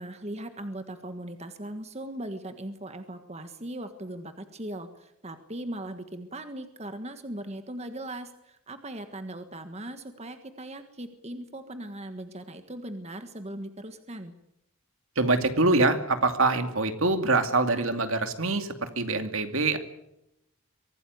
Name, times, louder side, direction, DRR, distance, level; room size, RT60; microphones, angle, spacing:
voice 1, 0.0-14.3, right 1 dB, 30° right, 8 dB, 1.5 m, -39 dB
voice 2, 15.2-19.8, right 3 dB, 65° right, 8 dB, 2.5 m, -24 dB
24.0 x 17.0 x 9.5 m, 0.84 s
head